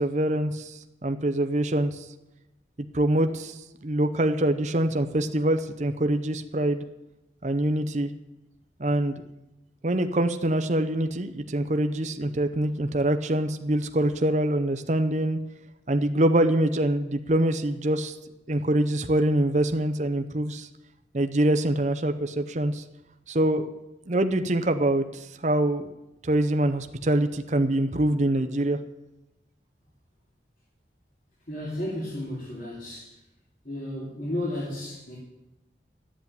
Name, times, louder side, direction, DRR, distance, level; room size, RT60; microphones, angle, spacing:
voice 1, 0.0-2.1 2.9-6.8 7.4-8.1 8.8-9.2 9.8-15.4 15.9-18.2 18.5-20.7 21.1-22.8 23.3-23.7 24.1-25.9 26.2-28.8, right 1 dB, 40° right, 7 dB, 0.7 m, -24 dB
voice 2, 31.5-33.2 33.6-35.2, left 1 dB, 50° left, -6 dB, 3.0 m, -33 dB
12.5 x 8.3 x 8.9 m, 0.95 s
head